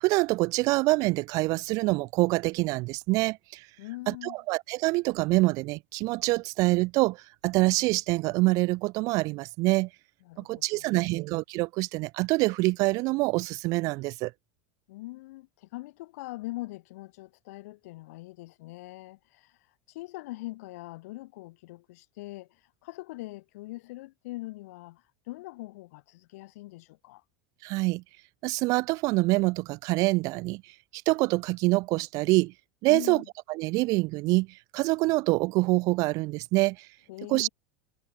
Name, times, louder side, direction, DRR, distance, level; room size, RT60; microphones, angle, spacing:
voice 1, 0.0-3.7 4.1-9.9 10.4-14.3 27.6-28.0 28.4-30.6 31.1-32.5 32.8-33.2 33.5-34.5 34.7-36.9 37.3-37.5, right 23 dB, 45° right, 0.6 m, -25 dB
voice 2, 3.8-4.4 10.2-11.2 14.9-19.6 19.9-27.2 32.9-33.2 37.1-37.5, left 20 dB, 70° left, 6.8 m, -42 dB
supercardioid pair, 155°, 8 cm